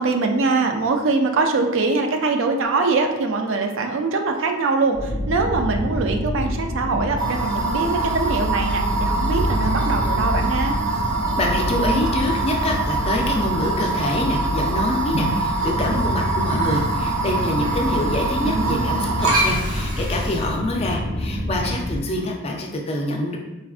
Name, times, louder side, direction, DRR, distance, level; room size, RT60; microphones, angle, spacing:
voice 1, 0.0-10.8 18.4-19.2, right 3 dB, 60° right, 4 dB, 0.3 m, -23 dB
sound 1, 4.9-22.0, left 1 dB, 25° right, 0.8 m, -27 dB
sound 2, 7.2-20.5, right 3 dB, 80° right, 0.9 m, -25 dB
voice 2, 11.4-23.4, left 1 dB, 25° left, 0 dB, 0.3 m, -25 dB
4.3 x 2.4 x 2.3 m, 1.0 s
head